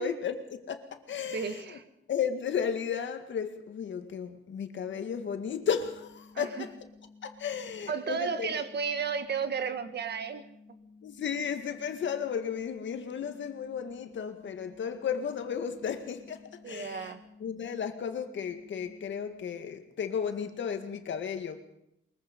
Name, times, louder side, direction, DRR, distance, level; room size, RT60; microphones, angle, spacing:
voice 1, 0.0-1.8 2.1-6.7 7.2-8.5 11.0-17.1 17.4-21.6, left 7 dB, 65° left, 2.0 m, -34 dB
voice 2, 1.3-1.8 6.3-6.7 7.9-10.4 16.6-17.2, right 6 dB, 55° right, 1.6 m, -33 dB
sound 1, 4.8-19.5, left 4 dB, 45° left, 3.9 m, -55 dB
23.0 x 22.0 x 5.4 m
wide cardioid pair, 170°, 21 cm